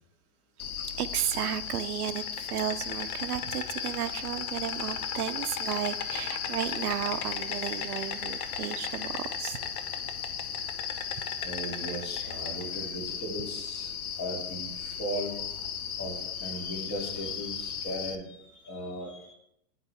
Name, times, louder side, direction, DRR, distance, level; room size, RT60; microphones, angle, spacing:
Insect, 0.6-18.2, left 7 dB, 70° left, 0.7 m, -35 dB
voice 1, 1.0-9.6, right 11 dB, 75° right, 12 dB, 0.6 m, -33 dB
voice 2, 9.8-10.2 11.4-15.6 16.0-19.3, equal, 40° left, -1 dB, 2.6 m, -38 dB
9.9 x 4.0 x 3.4 m, 0.81 s
hypercardioid pair, 100°, 45 cm